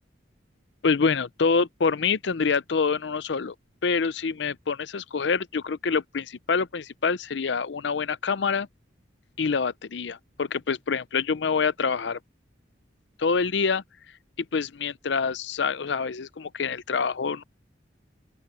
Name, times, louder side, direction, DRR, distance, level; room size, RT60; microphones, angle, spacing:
voice 1, 0.8-3.5 3.8-8.7 9.4-12.2 13.2-13.8 14.5-17.4, left 5 dB, 70° left, 0.6 m, -26 dB
open air
head